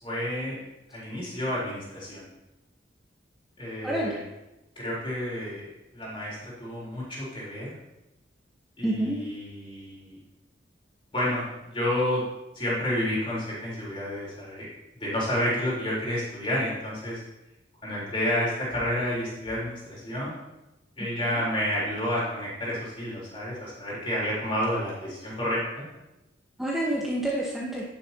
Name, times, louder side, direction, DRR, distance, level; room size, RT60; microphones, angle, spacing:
voice 1, 0.0-0.6 0.9-2.3 3.6-4.2 4.8-5.7 5.9-7.7 8.8-10.2 11.1-12.2 12.5-14.7 15.0-17.2 17.8-20.4 21.0-25.9, left 1 dB, 30° left, -6 dB, 4.0 m, -30 dB
voice 2, 3.8-4.2 8.8-9.2 21.3-21.4 26.6-27.8, right 1 dB, ahead, -5 dB, 1.2 m, -28 dB
11.0 x 10.5 x 2.9 m, 0.98 s
head